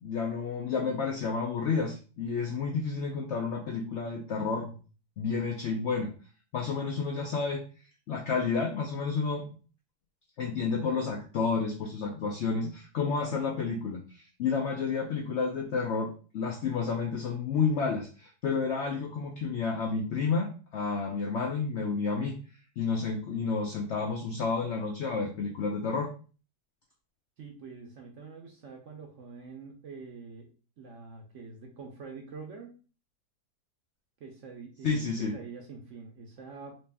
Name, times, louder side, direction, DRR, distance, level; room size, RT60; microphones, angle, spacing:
voice 1, 0.0-4.7 5.2-6.1 6.5-7.6 8.1-9.5 10.4-22.4 22.8-26.1 34.8-35.3, left 5 dB, 75° left, 1 dB, 0.6 m, -30 dB
voice 2, 27.4-30.5 30.8-32.7 34.2-35.1 35.3-36.7, right 5 dB, 65° right, 2 dB, 0.8 m, -45 dB
3.1 x 2.8 x 3.3 m, 0.37 s
omnidirectional pair, 1.8 m